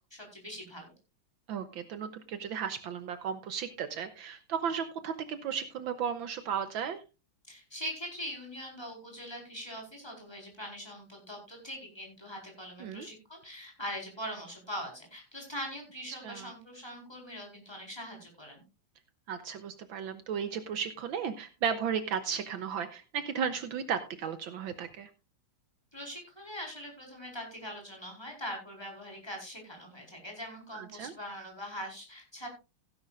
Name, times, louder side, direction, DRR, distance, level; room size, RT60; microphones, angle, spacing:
voice 1, 0.1-0.9 7.5-18.6 25.9-32.5, equal, 10° left, 0 dB, 4.6 m, -42 dB
voice 2, 1.5-7.0 12.8-13.1 16.2-16.5 19.3-25.1 30.7-31.1, right 7 dB, 70° right, 10 dB, 1.5 m, -35 dB
16.0 x 11.0 x 2.5 m, 0.29 s
omnidirectional pair, 2.3 m